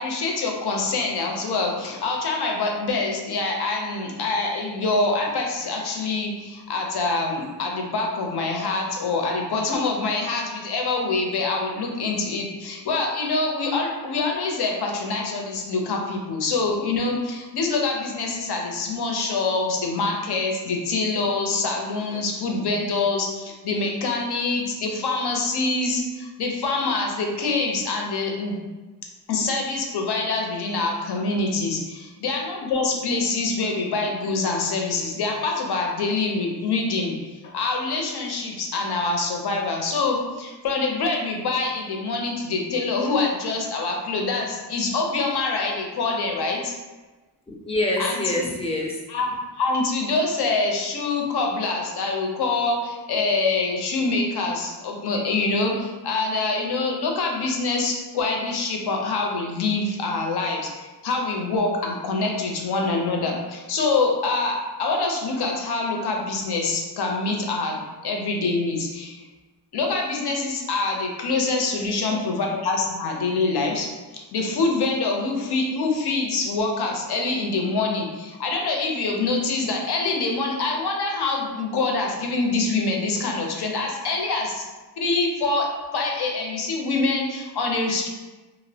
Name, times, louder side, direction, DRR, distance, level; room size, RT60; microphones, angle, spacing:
voice 1, 0.0-28.6 29.3-46.7 48.0-48.5 49.1-49.3 49.6-69.2 69.7-73.9 74.1-84.6 85.0-85.7 85.9-88.1, left 3 dB, 65° left, 0 dB, 0.6 m, -25 dB
voice 2, 47.5-49.0 71.8-72.2, left 1 dB, 15° left, -2 dB, 0.4 m, -27 dB
2.5 x 2.0 x 2.6 m, 1.2 s
wide cardioid pair, 100°, 42 cm